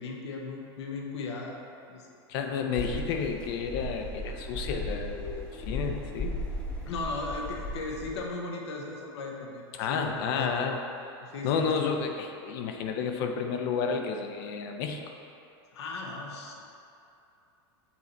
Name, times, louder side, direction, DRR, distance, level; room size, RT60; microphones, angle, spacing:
voice 1, 0.0-1.6 1.8-2.1 6.9-10.5 11.3-11.8 15.7-16.6, left 3 dB, 80° left, 0 dB, 0.9 m, -37 dB
voice 2, 2.3-6.3 9.7-10.8 11.4-15.0, left 6 dB, 60° left, 4 dB, 0.6 m, -31 dB
sound 1, 2.8-8.2, left 1 dB, 5° left, 0.9 m, -36 dB
7.2 x 3.2 x 4.2 m, 2.7 s
hypercardioid pair, 120°, 14 cm